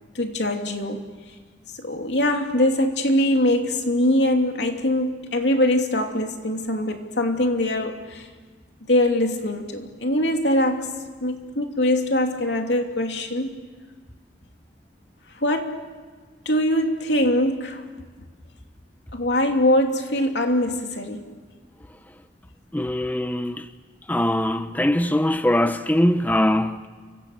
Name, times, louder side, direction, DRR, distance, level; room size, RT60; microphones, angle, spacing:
voice 1, 0.1-1.0 1.8-8.3 8.9-10.9 11.2-13.5 15.4-15.8 16.4-17.8 19.1-21.2, left 1 dB, 80° left, 2.9 m, -22 dB
voice 2, 22.7-23.7 24.1-26.9, left 1 dB, 10° left, 0.7 m, -22 dB
29.0 x 25.0 x 6.7 m
head